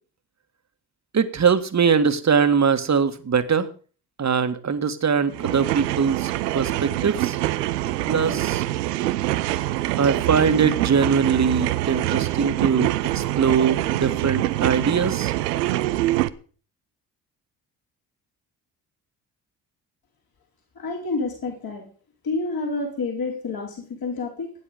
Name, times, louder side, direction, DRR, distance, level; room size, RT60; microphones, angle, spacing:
voice 1, 1.1-3.7 4.2-7.4 8.1-8.7 10.0-15.3, right 6 dB, 35° right, 10 dB, 1.9 m, -22 dB
sound 1, 5.3-16.3, right 15 dB, 85° right, 0.8 m, -25 dB
voice 2, 20.8-21.9 22.2-24.5, left 3 dB, 50° left, 1 dB, 4.5 m, -29 dB
16.5 x 9.9 x 5.2 m, 0.41 s
hypercardioid pair, 50°, 47 cm